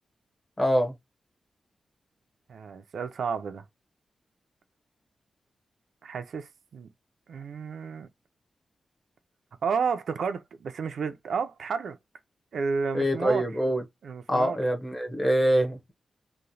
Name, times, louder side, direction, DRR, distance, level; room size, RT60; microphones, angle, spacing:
voice 1, 0.6-0.9 12.9-13.8 14.3-15.9, equal, 15° left, 0.7 m, -24 dB
voice 2, 2.5-3.6 6.0-6.9 7.3-8.1 9.6-12.0 12.5-13.4 14.0-14.6, right 5 dB, 80° right, 0.4 m, -31 dB
2.9 x 2.1 x 2.6 m
wide cardioid pair, 180°, 0 cm